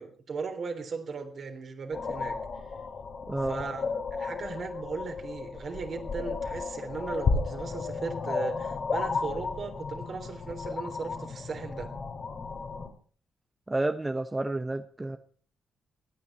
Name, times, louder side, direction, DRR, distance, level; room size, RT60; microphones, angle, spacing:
voice 1, 0.0-2.4 3.5-3.8 4.1-11.9, right 5 dB, 55° right, 5 dB, 3.5 m, -37 dB
sound 1, 1.9-12.9, left 4 dB, 55° left, 3.0 m, -33 dB
voice 2, 3.3-3.6 13.7-15.2, right 2 dB, 20° right, 8 dB, 1.0 m, -30 dB
24.0 x 9.6 x 4.3 m, 0.43 s
hypercardioid pair, 45°, 0 cm